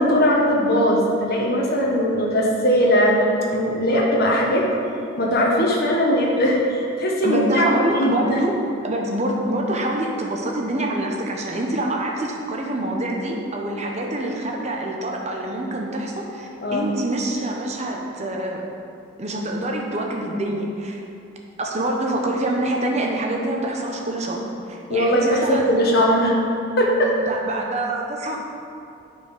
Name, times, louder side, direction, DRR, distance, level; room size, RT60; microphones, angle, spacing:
voice 1, 0.0-4.6 5.2-7.7 7.9-8.4 16.6-16.9 24.9-26.4 26.8-27.1, equal, 50° left, -2 dB, 1.3 m, -19 dB
voice 2, 7.2-8.6 8.8-18.6 19.2-21.0 21.6-25.7 27.0-28.4, right 1 dB, 35° right, 0 dB, 1.0 m, -26 dB
9.1 x 4.6 x 5.6 m, 2.6 s
head